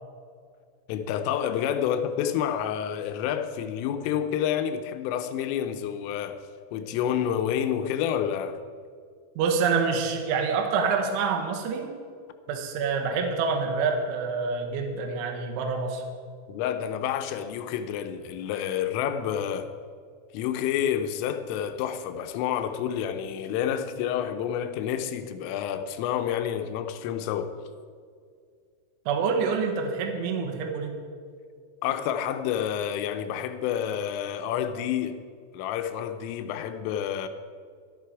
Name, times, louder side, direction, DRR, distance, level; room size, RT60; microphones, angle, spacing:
voice 1, 0.9-6.4 6.7-8.6 16.5-19.7 20.3-27.5 31.8-35.2 35.5-37.3, left 9 dB, 90° left, 3.4 m, -29 dB
voice 2, 9.4-11.9 12.5-16.1 29.1-30.9, right 5 dB, 75° right, 3.6 m, -27 dB
13.0 x 12.5 x 4.7 m
omnidirectional pair, 5.7 m